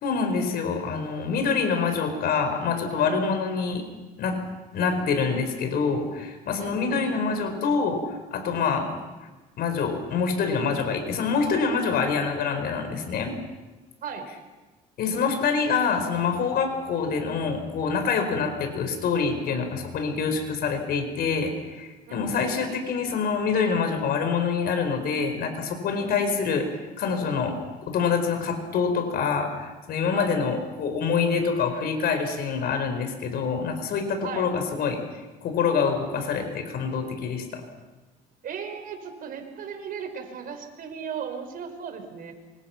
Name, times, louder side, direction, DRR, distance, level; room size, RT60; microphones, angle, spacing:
voice 1, 0.0-3.8 4.2-4.4 4.7-9.0 9.6-13.3 15.0-26.7 27.0-35.0 35.4-37.6, left 5 dB, 65° left, 7 dB, 4.8 m, -26 dB
voice 2, 3.0-3.4 6.6-7.0 8.7-8.9 14.0-14.3 22.1-22.5 26.0-26.4 30.1-30.3 34.2-34.5 38.4-42.3, right 7 dB, 60° right, 6 dB, 4.9 m, -36 dB
25.5 x 25.5 x 5.9 m, 1.2 s
cardioid pair, 110°, 17 cm